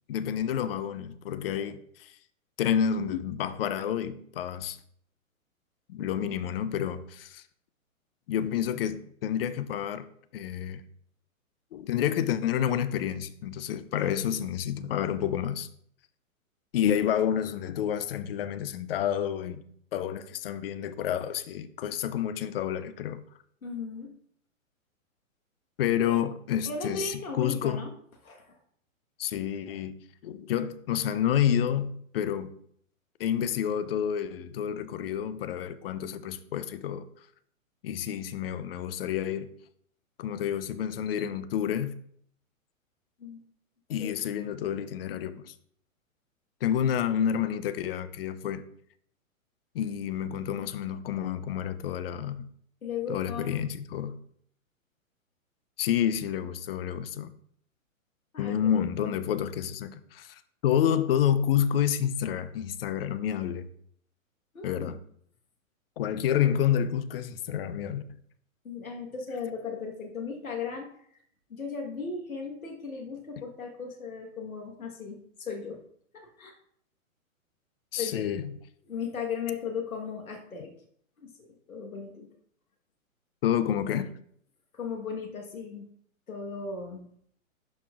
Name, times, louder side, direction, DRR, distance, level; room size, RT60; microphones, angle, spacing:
voice 1, 0.1-2.1 2.6-4.8 5.9-7.4 8.3-10.1 10.3-10.8 11.7-15.7 16.7-19.6 19.9-23.2 25.8-27.9 29.2-30.0 30.2-32.5 33.2-37.1 37.8-39.5 40.2-42.0 43.9-45.5 46.6-48.6 49.7-52.5 53.1-54.2 55.8-57.3 58.4-63.7 64.6-65.0 66.0-68.0 77.9-78.6 83.4-84.1, left 9 dB, 45° left, 0.6 m, -29 dB
voice 2, 23.6-24.1 26.1-26.2 26.6-27.9 28.2-28.6 43.2-43.4 44.0-44.1 52.8-53.5 58.3-59.1 64.5-65.0 68.6-71.2 71.5-75.8 76.1-76.5 78.0-78.3 78.9-80.7 81.2-82.3 83.9-84.1 84.7-85.9 86.3-87.1, left 5 dB, 85° left, 1.3 m, -37 dB
11.5 x 4.4 x 2.4 m
hypercardioid pair, 120°, 41 cm